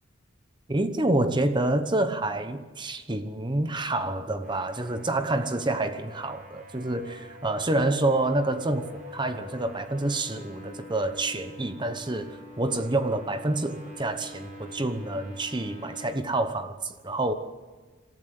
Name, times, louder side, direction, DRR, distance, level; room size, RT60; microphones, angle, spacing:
voice 1, 0.7-17.3, right 2 dB, 25° right, 1.0 m, -28 dB
sound 1, 4.4-16.1, left 1 dB, 45° right, 5.7 m, -46 dB
27.0 x 14.0 x 7.7 m
head